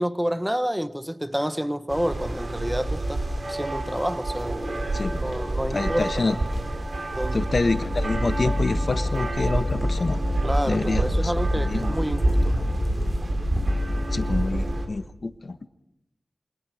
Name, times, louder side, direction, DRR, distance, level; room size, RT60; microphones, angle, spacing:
voice 1, 0.0-4.6 5.2-6.4 7.2-7.4 10.4-12.6, equal, 5° right, 1.0 m, -29 dB
sound 1, 1.9-14.9, right 2 dB, 60° right, 5.0 m, -28 dB
voice 2, 4.9-5.3 5.7-6.4 7.3-10.2 10.6-11.9 14.1-15.6, left 3 dB, 65° left, 1.3 m, -27 dB
sound 2, 7.8-14.8, left 1 dB, 40° left, 2.4 m, -29 dB
28.0 x 24.0 x 6.5 m
wide cardioid pair, 85°, 0 cm